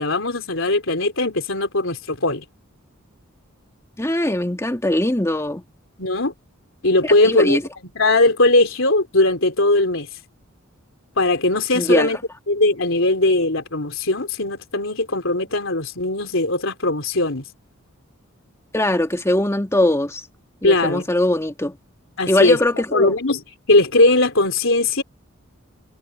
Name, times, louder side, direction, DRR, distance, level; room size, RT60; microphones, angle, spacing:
voice 1, 0.0-2.4 6.0-6.3 6.8-7.6 8.0-10.1 11.2-12.2 12.5-17.4 20.6-21.0 22.2-22.6 22.9-23.4 23.7-25.0, left 2 dB, 65° left, 4.0 m, -19 dB
voice 2, 4.0-5.6 7.0-7.6 11.7-12.1 18.7-20.3 20.6-21.8 22.3-23.1, left 1 dB, 15° left, 2.0 m, -21 dB
head